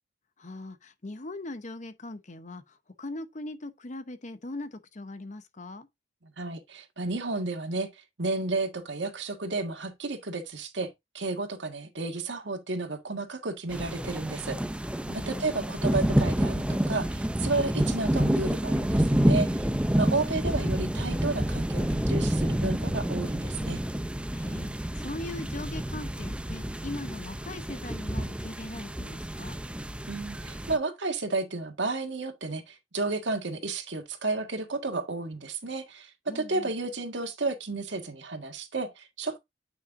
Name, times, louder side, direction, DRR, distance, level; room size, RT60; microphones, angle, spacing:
voice 1, 0.4-5.9 15.1-15.5 20.4-20.5 24.3-29.6 36.3-36.7, left 2 dB, 40° left, 0.8 m, -40 dB
voice 2, 6.2-7.9 8.2-14.6 15.1-19.5 20.0-23.8 30.1-39.4, right 3 dB, 80° right, 1.7 m, -32 dB
sound 1, 13.7-30.8, right 1 dB, 5° right, 0.5 m, -28 dB
9.6 x 5.6 x 2.6 m
head